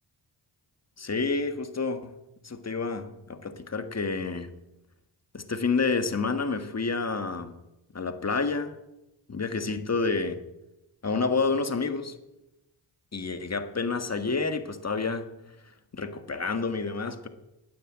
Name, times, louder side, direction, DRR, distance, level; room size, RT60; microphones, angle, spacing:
voice 1, 1.0-2.1 2.4-4.5 5.3-7.6 7.9-8.8 9.3-10.4 11.0-12.1 13.1-15.2 15.9-17.3, left 4 dB, 35° left, 9 dB, 1.6 m, -29 dB
12.0 x 9.5 x 8.8 m, 0.93 s
cardioid pair, 50°, 43 cm